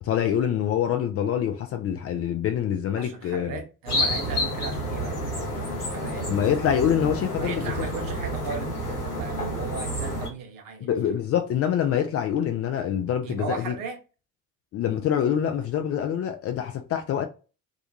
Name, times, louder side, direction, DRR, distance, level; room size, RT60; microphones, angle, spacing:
voice 1, 0.0-3.6 6.3-7.9 10.8-13.7 14.7-17.3, left 9 dB, 35° left, 0.4 m, -25 dB
voice 2, 2.9-5.2 5.5-6.3 7.4-10.9 13.2-14.0, right 5 dB, 50° right, 0.8 m, -36 dB
sound 1, 3.9-10.3, equal, 85° left, 0.8 m, -29 dB
2.3 x 2.2 x 2.8 m
figure-of-eight pair, 45°, 45 cm